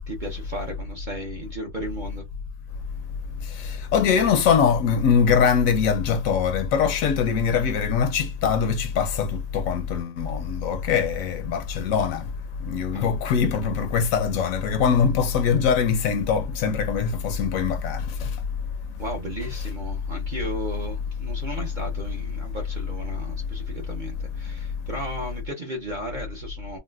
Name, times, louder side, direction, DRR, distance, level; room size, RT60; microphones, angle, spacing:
voice 1, 0.1-2.2 12.9-13.0 19.0-26.8, right 1 dB, 45° right, 0.6 m, -35 dB
voice 2, 3.5-12.3 12.6-18.4, left 6 dB, 70° left, 0.9 m, -22 dB
3.9 x 2.2 x 2.3 m
omnidirectional pair, 1.6 m